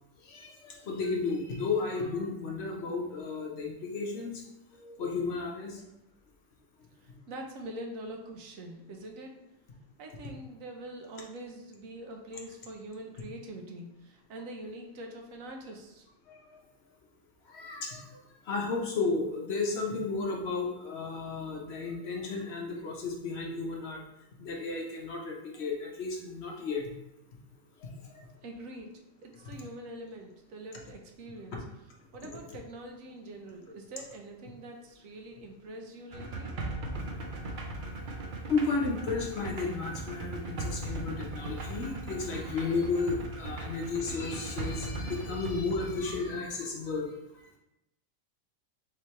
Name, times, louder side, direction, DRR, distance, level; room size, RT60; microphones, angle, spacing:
voice 1, 0.2-4.3 4.8-5.8 16.3-16.6 17.5-18.0 18.5-24.0 24.4-26.9 27.8-27.9 31.5-31.6 32.3-32.4 38.5-47.1, left 4 dB, 60° left, -1 dB, 1.0 m, -33 dB
voice 2, 7.0-9.3 10.0-16.1 28.4-31.6 32.1-36.5, right 1 dB, 80° right, 2 dB, 1.1 m, -44 dB
sound 1, 36.1-46.3, right 2 dB, 55° right, 0.6 m, -38 dB
3.7 x 3.2 x 4.3 m, 0.91 s
omnidirectional pair, 1.4 m